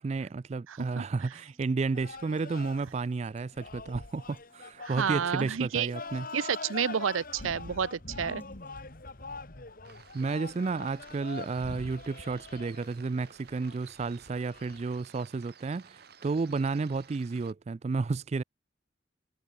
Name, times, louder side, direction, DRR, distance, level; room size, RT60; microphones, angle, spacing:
voice 1, 0.0-6.3 10.1-18.4, right 4 dB, 35° right, 0.3 m, -32 dB
voice 2, 0.7-1.0 4.8-5.9 6.3-8.4, right 7 dB, 85° right, 0.6 m, -30 dB
Acoustic guitar, 0.9-8.9, left 1 dB, 10° left, 4.6 m, -68 dB
sound 1, 1.9-14.9, left 3 dB, 45° left, 2.0 m, -44 dB
sound 2, 9.8-17.5, right 7 dB, 50° right, 1.6 m, -55 dB
head